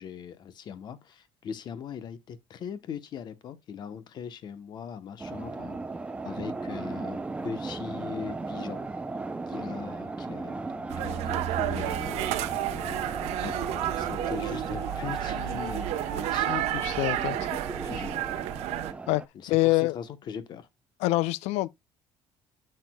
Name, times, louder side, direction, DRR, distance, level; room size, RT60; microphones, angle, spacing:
voice 1, 0.0-5.8 6.2-8.9 9.5-13.0 13.4-16.6 17.3-17.4 17.8-18.1 19.3-20.7, left 7 dB, 40° left, 0.9 m, -40 dB
sound 1, 5.2-19.3, right 3 dB, 10° right, 0.5 m, -36 dB
sound 2, 10.9-18.9, right 14 dB, 75° right, 0.8 m, -31 dB
voice 2, 16.8-17.5 19.1-19.2 19.5-20.0 21.0-21.7, left 18 dB, 85° left, 0.4 m, -25 dB
10.0 x 6.6 x 2.2 m
cardioid pair, 155°, 11 cm